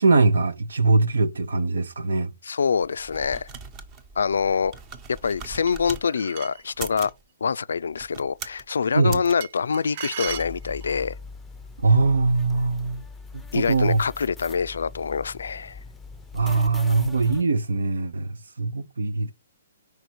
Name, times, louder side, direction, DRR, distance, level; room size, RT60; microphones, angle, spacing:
voice 1, 0.0-2.3 8.9-9.2 11.8-13.0 13.3-14.0 16.3-19.3, right 3 dB, 80° right, 0.8 m, -22 dB
voice 2, 2.4-3.5 4.2-4.8 5.1-7.1 7.4-11.2 13.5-15.8, left 6 dB, 75° left, 0.3 m, -25 dB
sound 1, 2.8-6.1 6.7-7.2 7.9-8.7 9.1-9.3, right 5 dB, 30° right, 0.9 m, -40 dB
sound 2, 5.7-6.7 9.4-11.1, right 10 dB, 50° right, 0.5 m, -36 dB
sound 3, 10.3-17.4, left 4 dB, 5° left, 0.6 m, -42 dB
5.1 x 4.7 x 4.5 m
hypercardioid pair, 135°, 0 cm